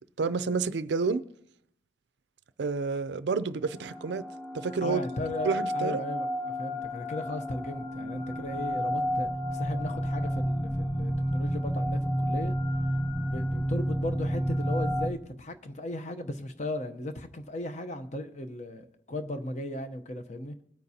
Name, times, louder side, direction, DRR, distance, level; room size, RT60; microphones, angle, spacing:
voice 1, 0.2-1.2 2.6-4.2 4.5-5.0 5.4-6.0, right 4 dB, 70° right, 0.4 m, -29 dB
sound 1, 3.8-15.1, equal, 10° left, 1.0 m, -31 dB
voice 2, 4.8-6.3 6.6-12.5 13.3-20.6, left 1 dB, 40° left, 0.8 m, -36 dB
20.5 x 9.1 x 2.8 m
head